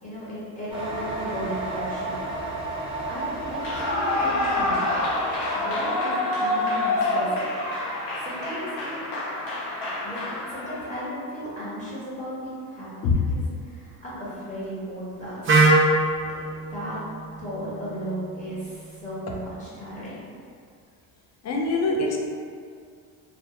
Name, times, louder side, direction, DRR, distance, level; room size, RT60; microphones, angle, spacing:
voice 1, 0.0-2.2 2.7-2.8 3.1-4.9 5.5-7.5 8.1-9.0 10.0-10.2 10.5-15.6 16.3-16.4 16.7-17.0 17.4-20.2, equal, 15° left, -10 dB, 1.0 m, -35 dB
sound 1, 0.7-6.0, right 2 dB, 10° right, 0.8 m, -33 dB
Clapping / Cheering / Applause, 3.5-10.9, left 2 dB, 80° left, 0.7 m, -27 dB
Wind instrument woodwind instrument, 15.5-19.3, right 2 dB, 30° right, 0.4 m, -24 dB
voice 2, 21.4-22.2, left 3 dB, 35° left, -1 dB, 0.4 m, -24 dB
2.2 x 2.1 x 2.8 m, 2.2 s
supercardioid pair, 85°, 48 cm